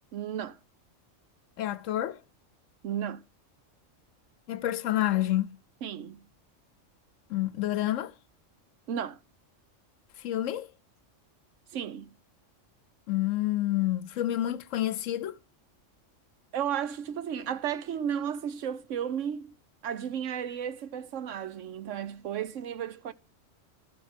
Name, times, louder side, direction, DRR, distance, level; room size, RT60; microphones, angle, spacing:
voice 1, 0.1-0.6 2.8-3.2 5.8-6.3 8.9-9.2 11.7-12.1 16.5-19.5 19.8-23.1, right 9 dB, 75° right, 1.1 m, -33 dB
voice 2, 1.6-2.2 4.5-5.5 7.3-8.1 10.2-10.7 13.1-15.4, left 14 dB, 85° left, 1.1 m, -28 dB
12.5 x 5.3 x 5.0 m
omnidirectional pair, 1.3 m